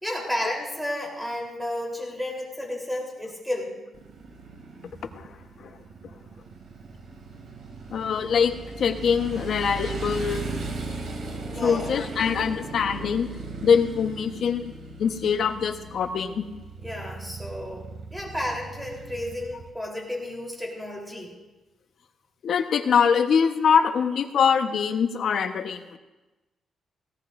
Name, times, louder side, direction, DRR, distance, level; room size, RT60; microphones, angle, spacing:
voice 1, 0.0-3.8 11.5-12.0 16.8-21.3, left 1 dB, ahead, -1 dB, 3.8 m, -32 dB
Motorcycle, 3.9-19.7, right 3 dB, 70° right, 2.6 m, -38 dB
voice 2, 7.9-8.5 8.8-10.6 11.6-13.3 13.6-14.7 15.0-16.4 22.4-26.0, left 6 dB, 60° left, 6 dB, 1.1 m, -23 dB
18.0 x 17.5 x 2.6 m, 1.1 s
cardioid pair, 130°, 0 cm